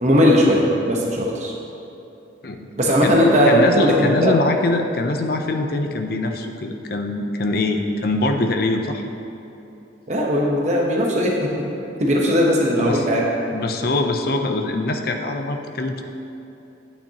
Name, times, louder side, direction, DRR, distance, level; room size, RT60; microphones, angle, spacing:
voice 1, 0.0-1.5 2.8-4.4 10.1-11.5 12.0-13.2, equal, 40° right, -2 dB, 0.9 m, -18 dB
voice 2, 3.5-9.0 12.8-13.0 13.5-16.0, left 2 dB, 50° left, 4 dB, 0.6 m, -23 dB
9.1 x 8.7 x 2.9 m, 2.8 s
head